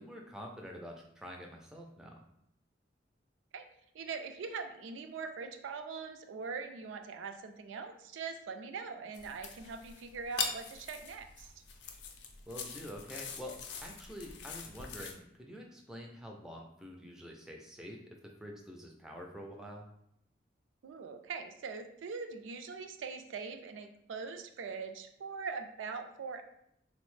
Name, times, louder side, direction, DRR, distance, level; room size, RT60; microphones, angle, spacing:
voice 1, 0.0-2.2 12.5-19.8, equal, 5° right, 0 dB, 0.3 m, -47 dB
voice 2, 3.9-11.5 20.8-26.4, right 5 dB, 90° right, 6 dB, 0.4 m, -42 dB
sound 1, 9.1-15.1, left 5 dB, 70° left, 0.4 m, -43 dB
3.7 x 2.0 x 3.1 m, 0.75 s
head